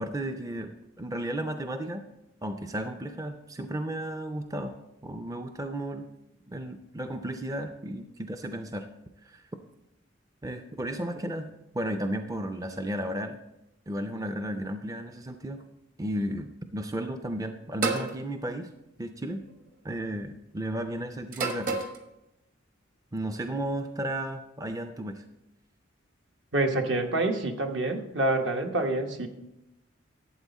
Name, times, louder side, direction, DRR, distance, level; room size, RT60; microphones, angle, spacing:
voice 1, 0.0-2.1 2.4-4.8 5.0-6.1 6.5-8.9 9.2-9.4 10.4-13.4 13.9-15.6 16.0-18.7 19.0-19.4 19.8-21.8 23.1-25.2, right 1 dB, 15° right, 7 dB, 0.4 m, -34 dB
sound 1, 17.8-18.1 19.3-19.7 21.3-22.0, right 4 dB, 45° right, 1.2 m, -29 dB
voice 2, 26.5-29.3, right 2 dB, 65° right, 4 dB, 1.1 m, -27 dB
12.0 x 7.9 x 4.1 m, 0.90 s
head